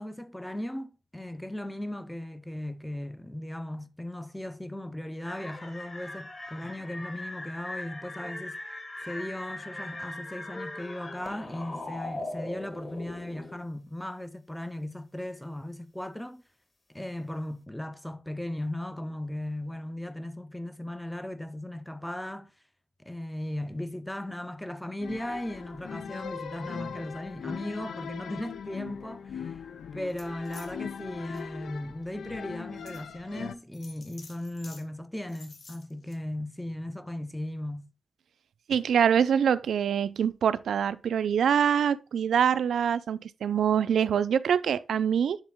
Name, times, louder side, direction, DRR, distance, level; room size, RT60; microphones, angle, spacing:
voice 1, 0.0-8.6 9.0-16.4 16.9-22.5 23.0-29.6 29.9-37.9, left 1 dB, 5° left, 0.5 m, -37 dB
sound 1, 5.2-13.6, left 2 dB, 30° left, 1.3 m, -40 dB
sound 2, 25.0-33.6, left 7 dB, 85° left, 0.5 m, -40 dB
sound 3, 30.1-30.7 31.2-31.4 32.0-32.1 32.9-33.0 33.7-34.8 35.3-36.2, left 3 dB, 50° left, 1.4 m, -50 dB
voice 2, 38.7-45.4, right 8 dB, 90° right, 0.4 m, -25 dB
9.9 x 4.0 x 3.5 m
wide cardioid pair, 170°, 0 cm